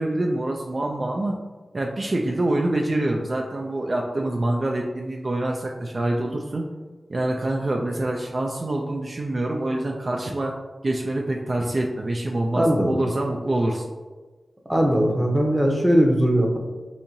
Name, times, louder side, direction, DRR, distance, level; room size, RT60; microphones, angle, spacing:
voice 1, 0.0-1.4 1.7-6.7 7.1-10.5 10.8-13.9, right 1 dB, 50° right, 0 dB, 0.4 m, -25 dB
voice 2, 12.5-12.9 14.7-16.6, equal, 10° right, 0 dB, 0.8 m, -19 dB
4.3 x 2.7 x 2.6 m, 1.3 s
cardioid pair, 45°, 0 cm